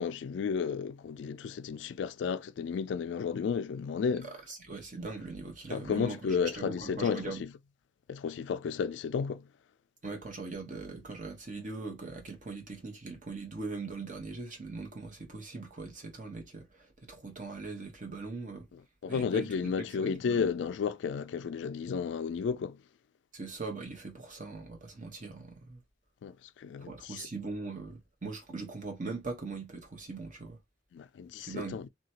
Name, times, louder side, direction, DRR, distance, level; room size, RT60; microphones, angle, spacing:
voice 1, 0.0-4.3 5.7-7.5 8.1-9.5 18.7-22.8 26.2-27.3 30.9-31.9, left 6 dB, 70° left, 0.3 m, -33 dB
voice 2, 4.2-7.4 10.0-18.7 19.1-20.4 23.3-25.8 26.8-30.6 31.5-31.8, right 3 dB, 45° right, 1.0 m, -41 dB
2.8 x 2.3 x 2.7 m
head